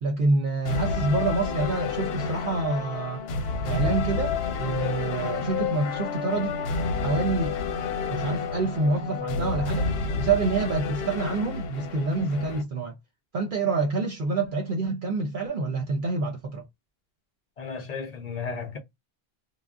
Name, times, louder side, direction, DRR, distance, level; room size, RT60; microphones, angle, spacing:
voice 1, 0.0-3.2 3.6-6.6 7.0-7.6 8.1-9.9 10.2-12.9 13.3-16.6, right 3 dB, 60° right, 0.7 m, -27 dB
sound 1, 0.6-12.6, left 4 dB, 80° left, 0.8 m, -29 dB
voice 2, 17.6-18.8, left 5 dB, 45° left, 0.7 m, -34 dB
2.3 x 2.0 x 3.4 m
omnidirectional pair, 1.0 m